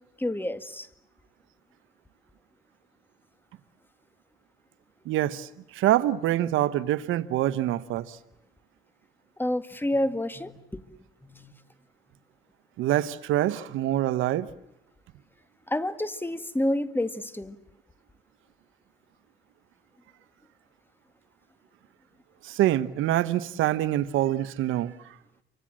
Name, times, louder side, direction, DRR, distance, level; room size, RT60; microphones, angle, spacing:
voice 1, 0.2-0.9 9.4-10.8 11.2-11.5 15.7-17.6, left 1 dB, 10° left, 2.0 m, -29 dB
voice 2, 5.1-8.2 12.8-14.5 22.4-24.9, right 13 dB, 90° right, 1.1 m, -25 dB
29.0 x 25.5 x 7.6 m
cardioid pair, 90°, 20 cm